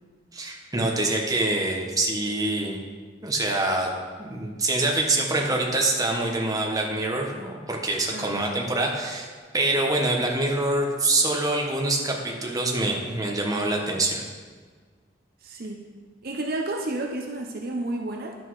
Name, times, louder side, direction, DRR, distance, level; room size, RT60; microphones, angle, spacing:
voice 1, 0.3-2.8 3.2-3.9 4.2-9.3 9.5-14.2, right 2 dB, 20° right, 0 dB, 1.2 m, -25 dB
voice 2, 15.4-15.9 16.2-18.3, right 2 dB, 55° right, 1 dB, 0.7 m, -31 dB
11.0 x 6.1 x 4.8 m, 1.5 s
head